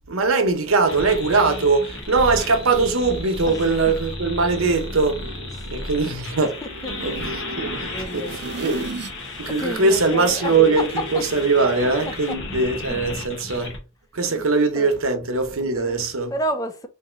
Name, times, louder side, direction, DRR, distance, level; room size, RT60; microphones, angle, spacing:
voice 1, 0.1-5.3 5.7-6.6 7.0-8.9 9.4-13.8 14.1-16.3, right 3 dB, 90° right, 0.9 m, -21 dB
sound 1, 0.9-13.8, left 2 dB, 60° left, 1.2 m, -34 dB
voice 2, 3.5-4.0 5.5-5.7 6.4-6.9 7.8-8.4 9.6-10.5 11.8-11.9 12.9-13.0 14.3-14.4 14.7-14.9 15.7-16.0 16.3-16.9, equal, 15° left, 0.4 m, -31 dB
sound 2, 4.0-9.2 9.6-11.4, right 2 dB, 50° right, 0.4 m, -37 dB
3.4 x 2.7 x 3.9 m
head